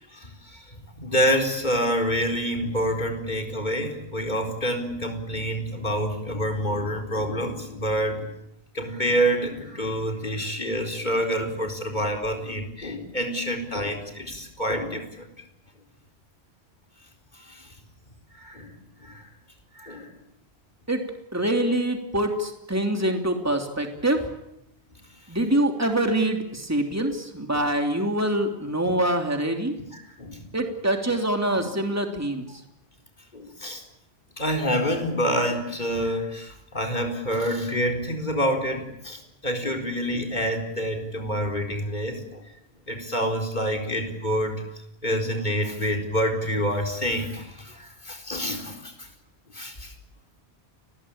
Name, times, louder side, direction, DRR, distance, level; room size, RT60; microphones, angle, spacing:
voice 1, 0.1-8.3 8.7-15.3 17.3-17.7 18.3-18.8 19.0-19.2 19.7-20.1 27.5-27.6 29.9-30.4 33.3-33.8 34.4-42.5 42.9-44.6 45.0-49.1 49.5-49.9, equal, 45° left, 3 dB, 4.7 m, -27 dB
voice 2, 21.3-24.3 25.3-29.8 30.5-32.6, right 1 dB, 15° right, 4 dB, 3.1 m, -25 dB
30.0 x 21.5 x 8.8 m, 0.82 s
omnidirectional pair, 1.1 m